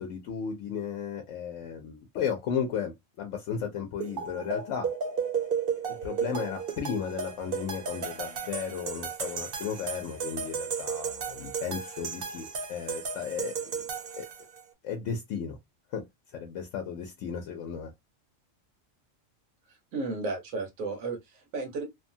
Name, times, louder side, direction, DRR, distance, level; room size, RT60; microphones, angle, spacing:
voice 1, 0.0-4.9 5.9-13.8 14.2-14.3 14.8-15.6 15.9-16.0 16.3-17.9, left 7 dB, 75° left, 0.9 m, -34 dB
sound 1, 4.0-14.6, right 6 dB, 55° right, 0.7 m, -34 dB
voice 2, 19.7-21.8, right 3 dB, 90° right, 1.2 m, -34 dB
2.9 x 2.2 x 2.6 m
omnidirectional pair, 1.3 m